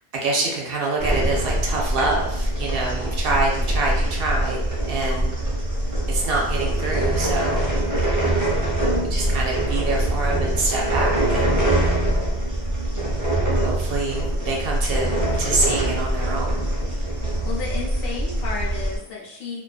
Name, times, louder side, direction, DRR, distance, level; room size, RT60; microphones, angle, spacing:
voice 1, 0.1-5.3 6.1-7.7 9.0-11.6 13.6-16.7, right 3 dB, 65° right, -2 dB, 0.7 m, -26 dB
sound 1, 1.0-19.0, right 1 dB, 25° right, 0.5 m, -23 dB
voice 2, 17.4-19.6, left 4 dB, 65° left, -4 dB, 0.8 m, -32 dB
2.5 x 2.3 x 2.2 m, 0.82 s
omnidirectional pair, 1.1 m